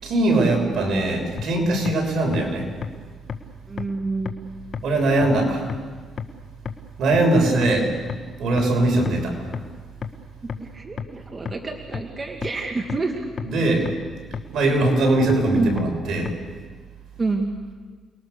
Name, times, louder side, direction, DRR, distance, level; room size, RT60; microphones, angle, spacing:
voice 1, 0.0-2.7 4.8-5.7 7.0-7.9 8.4-9.4 13.4-13.9 14.5-16.3, right 2 dB, 65° right, 2 dB, 6.5 m, -21 dB
voice 2, 0.5-1.1 3.7-4.3 10.4-13.1 15.5-15.7 17.2-17.5, right 3 dB, 30° right, 3 dB, 2.2 m, -28 dB
sound 1, 1.4-1.5 1.9-2.0 2.3-2.4 2.8-2.9 3.3-3.4 3.8-3.9 4.3-4.4 4.7-4.8 5.2-5.3 5.7-5.8 6.2-6.3 6.7-6.8 7.1-7.2 7.6-7.7 8.1-8.2 8.6-8.7 9.1-9.2 9.5-9.6 10.0-10.1 10.5-10.6 11.0-11.1 11.5-11.6 11.9-12.0 12.4-12.5 12.9-13.0 13.4-13.5 13.9-14.0 14.3-14.4 14.8-14.9 15.3-15.4 15.8-15.9 16.3-16.4, left 7 dB, 50° left, 1.7 m, -29 dB
29.5 x 21.5 x 6.8 m, 1.5 s
cardioid pair, 90°, 0 cm